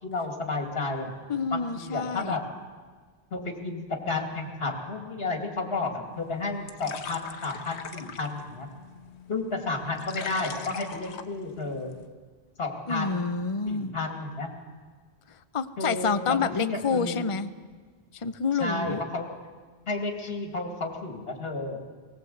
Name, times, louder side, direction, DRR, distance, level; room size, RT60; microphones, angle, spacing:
voice 1, 0.0-1.1 1.5-2.4 3.3-8.7 9.3-11.9 12.6-13.3 13.7-14.5 15.8-17.2 18.6-19.3 19.9-21.8, left 3 dB, 60° left, 2 dB, 2.5 m, -32 dB
voice 2, 1.3-2.4 12.9-13.9 15.3-17.5 18.1-19.0, left 5 dB, 35° left, 10 dB, 0.7 m, -28 dB
sound 1, 6.1-12.1, left 6 dB, 75° left, 1.3 m, -42 dB
19.0 x 19.0 x 7.9 m, 1.5 s
omnidirectional pair, 1.1 m